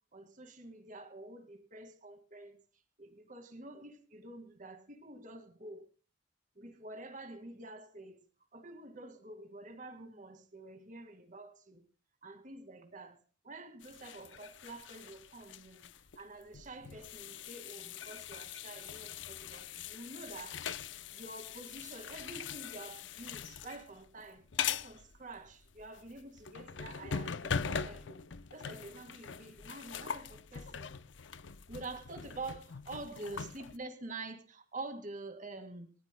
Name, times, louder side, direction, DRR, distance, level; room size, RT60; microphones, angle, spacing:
voice 1, 0.1-2.6 3.0-5.8 6.6-8.2 8.5-11.8 12.2-13.2 13.4-15.9 16.2-20.6 21.1-28.2 28.5-30.9 31.7-35.9, right 2 dB, 45° right, 6 dB, 2.0 m, -47 dB
sound 1, 13.8-33.8, left 7 dB, 75° left, 0.7 m, -42 dB
28.0 x 14.5 x 2.2 m, 0.35 s
head